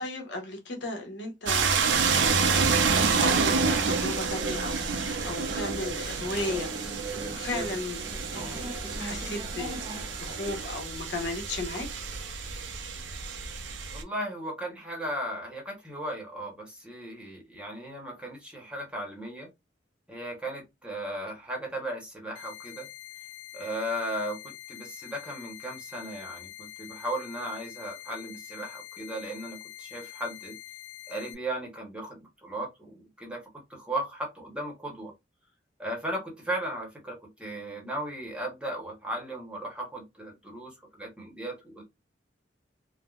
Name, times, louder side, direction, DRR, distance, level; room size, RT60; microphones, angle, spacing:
voice 1, 0.0-11.9, left 2 dB, 70° left, 0.9 m, -36 dB
sound 1, 1.5-14.0, right 5 dB, 80° right, 0.5 m, -28 dB
sound 2, 2.1-10.4, right 2 dB, 20° right, 0.5 m, -41 dB
voice 2, 13.9-19.5 20.1-22.9 23.5-24.4 24.7-30.5 31.1-33.4 33.7-35.1 35.8-41.8, right 1 dB, 5° right, 0.9 m, -36 dB
sound 3, 22.3-31.3, left 13 dB, 90° left, 0.4 m, -45 dB
3.4 x 2.1 x 2.3 m
head